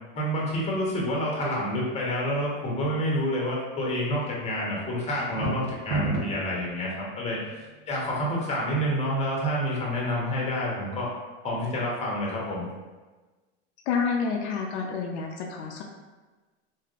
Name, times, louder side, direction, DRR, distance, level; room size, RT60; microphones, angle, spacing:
voice 1, 0.1-7.6 7.9-11.1 11.4-12.7, equal, 20° left, -4 dB, 0.8 m, -28 dB
sound 1, 5.2-6.5, right 2 dB, 80° right, 0.9 m, -29 dB
voice 2, 13.9-15.8, left 5 dB, 70° left, 1 dB, 0.5 m, -29 dB
3.4 x 2.1 x 2.4 m, 1.3 s
hypercardioid pair, 115°, 35 cm